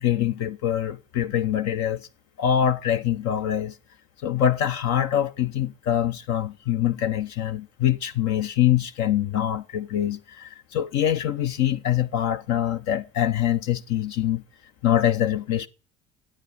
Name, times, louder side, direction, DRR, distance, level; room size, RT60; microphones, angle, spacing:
voice 1, 0.0-2.1 2.4-3.7 4.2-14.4 14.8-15.7, left 10 dB, 50° left, 0.9 m, -24 dB
13.0 x 8.7 x 6.2 m
figure-of-eight pair, 60°, 34 cm